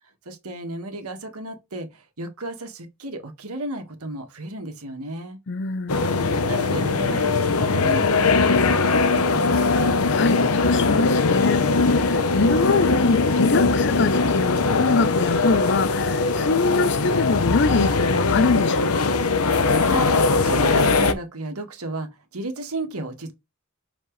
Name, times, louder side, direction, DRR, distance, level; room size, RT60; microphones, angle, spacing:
voice 1, 0.3-5.4 6.5-8.2 8.5-9.7 19.8-20.1 20.4-23.3, right 2 dB, 85° right, 2.0 m, -33 dB
voice 2, 5.5-6.1 9.8-19.2, left 4 dB, 55° left, 0.6 m, -24 dB
sound 1, 5.9-21.1, left 3 dB, 80° left, 1.0 m, -20 dB
7.2 x 5.2 x 3.3 m
head